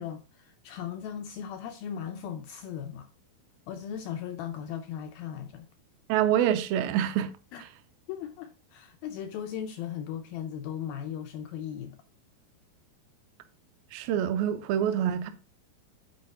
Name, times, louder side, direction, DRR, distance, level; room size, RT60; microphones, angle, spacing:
voice 1, 0.0-3.1 3.7-5.7 7.5-7.6 8.1-12.0, left 9 dB, 85° left, 2.0 m, -37 dB
voice 2, 6.1-7.3 13.9-15.3, right 10 dB, 85° right, 2.1 m, -26 dB
9.5 x 4.7 x 4.0 m
omnidirectional pair, 4.8 m